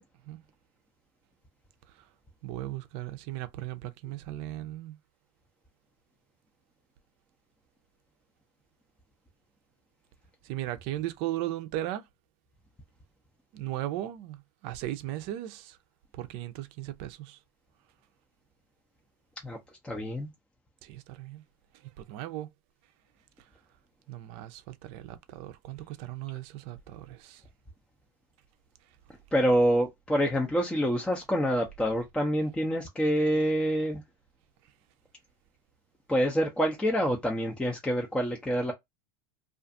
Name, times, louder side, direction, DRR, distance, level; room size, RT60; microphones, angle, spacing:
voice 1, 2.4-5.0 10.4-12.0 13.5-15.8 16.1-17.4 20.8-21.4 22.0-22.5 24.1-27.4, right 14 dB, 55° right, 0.5 m, -37 dB
voice 2, 19.4-20.3 29.3-34.0 36.1-38.7, equal, 5° left, 0.5 m, -27 dB
2.4 x 2.4 x 2.5 m
supercardioid pair, 120°, 13 cm